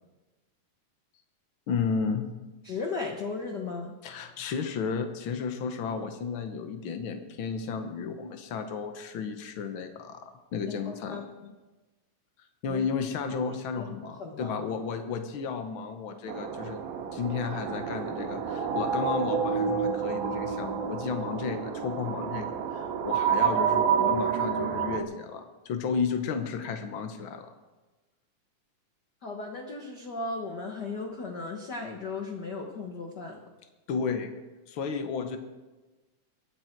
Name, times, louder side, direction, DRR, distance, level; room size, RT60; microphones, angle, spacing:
voice 1, 1.7-2.3 4.0-11.2 12.6-16.8 17.1-27.5 33.9-34.3 34.7-35.4, left 5 dB, 85° left, 7 dB, 1.1 m, -33 dB
voice 2, 2.6-3.9 11.1-11.2 12.7-12.8 13.7-14.6 29.2-33.4, left 3 dB, 55° left, 1 dB, 1.1 m, -36 dB
sound 1, 16.3-25.0, right 7 dB, 80° right, 2.6 m, -29 dB
22.0 x 10.5 x 4.5 m, 1.2 s
omnidirectional pair, 3.8 m